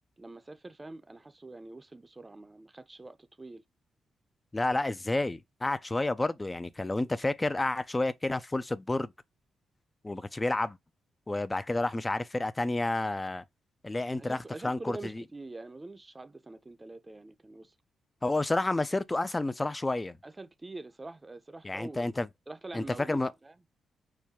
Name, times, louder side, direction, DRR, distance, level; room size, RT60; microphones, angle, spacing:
voice 1, 0.2-3.6 14.2-17.7 20.2-22.1 22.5-23.6, right 2 dB, 25° right, 0.6 m, -45 dB
voice 2, 4.5-9.1 10.0-10.8 11.3-13.4 13.8-14.4 14.6-15.2 18.2-20.2 21.6-22.3 22.7-23.3, left 2 dB, 25° left, 0.4 m, -30 dB
4.6 x 2.2 x 3.5 m
supercardioid pair, 55°, 0 cm